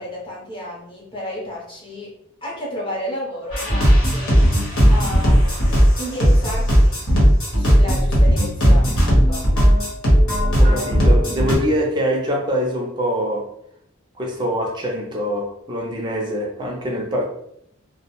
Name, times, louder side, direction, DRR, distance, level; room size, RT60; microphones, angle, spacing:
voice 1, 0.0-2.1 2.4-4.4 4.9-5.4 6.0-7.0 7.5-9.4, left 1 dB, 25° left, -4 dB, 0.7 m, -32 dB
sound 1, 3.5-11.6, equal, 75° left, 1.0 m, -16 dB
voice 2, 10.6-13.5 14.2-17.2, equal, 20° right, -1 dB, 0.5 m, -24 dB
2.2 x 2.1 x 2.9 m, 0.73 s
head